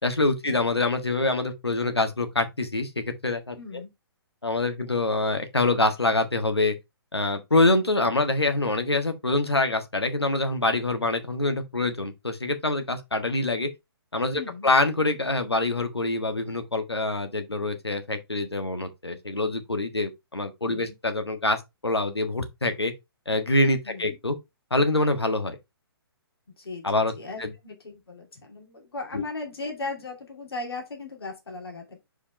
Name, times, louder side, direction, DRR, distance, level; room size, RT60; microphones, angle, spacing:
voice 1, 0.0-3.6 4.4-6.7 7.1-13.7 14.1-22.9 23.3-24.4 24.7-25.6 26.8-27.1 27.4-27.5 29.1-29.2, left 2 dB, 90° left, 1.5 m, -25 dB
voice 2, 3.6-3.9 14.3-14.7 20.6-20.9 23.8-24.2 26.6-32.0, left 3 dB, 70° left, 2.5 m, -37 dB
5.3 x 4.8 x 4.2 m
figure-of-eight pair, 130°, 13 cm